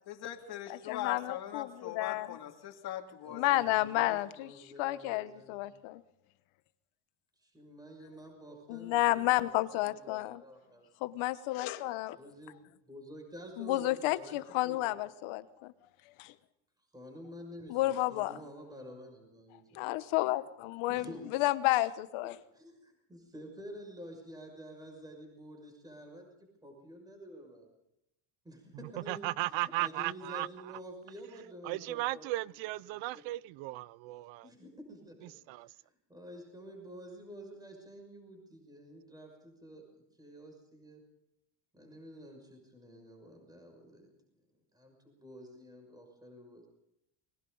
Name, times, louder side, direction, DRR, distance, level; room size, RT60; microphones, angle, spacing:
voice 1, 0.1-3.4, left 11 dB, 50° left, 3 dB, 2.8 m, -41 dB
voice 2, 0.7-2.4 3.3-4.5 4.8-6.0 8.7-10.4 11.0-12.2 13.6-15.7 16.2-16.3 17.7-18.4 19.7-21.1 21.3-22.4, left 17 dB, 70° left, 13 dB, 1.3 m, -31 dB
voice 3, 3.2-5.7 7.4-11.1 12.2-14.4 14.6-15.0 16.9-19.8 20.9-21.4 22.5-27.7 28.4-33.2 34.4-35.3 35.6-35.8 36.1-39.9 40.2-41.0 41.7-44.1 44.7-46.7, equal, 10° right, 2 dB, 6.3 m, -50 dB
voice 4, 29.1-30.5 31.6-34.5 35.5-35.7, right 18 dB, 65° right, 22 dB, 0.7 m, -35 dB
29.5 x 22.0 x 4.0 m, 0.83 s
cardioid pair, 140°, 49 cm